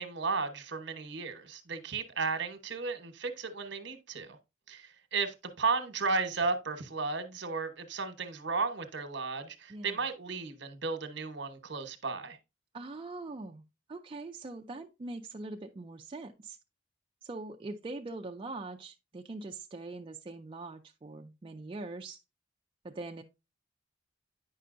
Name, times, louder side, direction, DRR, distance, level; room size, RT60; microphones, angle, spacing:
voice 1, 0.0-4.4 4.7-12.4, right 4 dB, 65° right, 1.0 m, -34 dB
voice 2, 9.7-10.1 12.7-13.6 13.9-16.6 17.2-22.2 22.8-23.2, right 2 dB, 25° right, 0.4 m, -42 dB
9.1 x 5.6 x 2.5 m
head